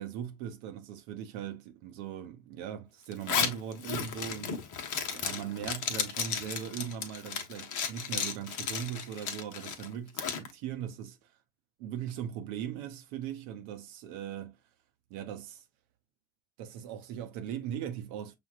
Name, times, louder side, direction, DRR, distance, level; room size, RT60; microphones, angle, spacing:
voice 1, 0.0-4.7 5.1-11.3 11.8-14.6 15.1-15.6 16.6-18.4, right 9 dB, 65° right, 0.7 m, -39 dB
Zipper (clothing), 3.1-10.5, left 7 dB, 45° left, 0.9 m, -34 dB
6.5 x 2.3 x 2.3 m
figure-of-eight pair, 45°, 42 cm